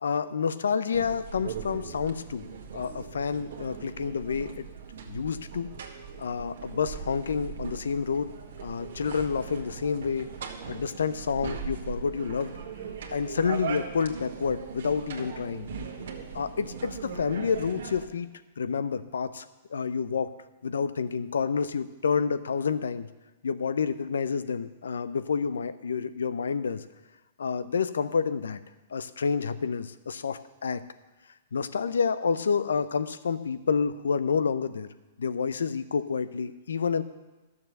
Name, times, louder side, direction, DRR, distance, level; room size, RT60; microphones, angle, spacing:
voice 1, 0.0-2.5 2.7-4.7 5.1-5.7 6.2-8.3 8.6-10.3 10.7-12.5 13.1-15.7 16.3-18.3 18.6-20.3 20.6-23.1 23.4-26.8 27.4-28.6 28.9-30.8 31.5-34.9 35.2-37.0, left 6 dB, 80° left, 13 dB, 0.6 m, -29 dB
sound 1, 0.9-18.1, right 6 dB, 70° right, 1.6 m, -39 dB
12.0 x 6.9 x 6.6 m, 1.1 s
hypercardioid pair, 120°, 0 cm